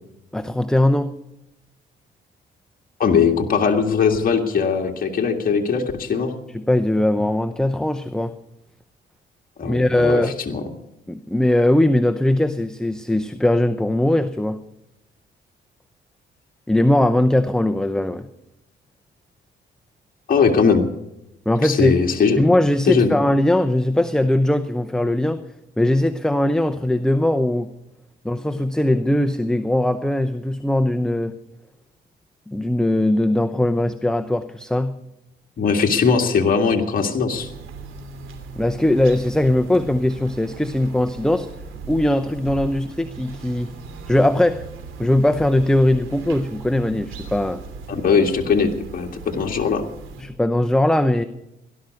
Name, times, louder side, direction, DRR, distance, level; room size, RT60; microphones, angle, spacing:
voice 1, 0.3-1.1 6.5-8.3 9.6-10.3 11.1-14.6 16.7-18.3 21.5-22.0 22.4-25.4 25.8-27.7 28.2-31.3 32.5-35.0 38.6-41.5 41.9-43.7 44.1-44.6 45.0-47.6 50.2-51.2, left 1 dB, 5° left, 9 dB, 0.7 m, -20 dB
voice 2, 3.0-6.3 9.6-10.6 20.3-20.9 21.6-22.4 22.9-23.1 35.6-37.5 47.9-49.8, left 5 dB, 45° left, 1 dB, 2.0 m, -20 dB
sound 1, 37.3-50.2, right 4 dB, 85° right, 3.0 m, -38 dB
17.5 x 12.0 x 6.5 m, 0.89 s
cardioid pair, 90°, 20 cm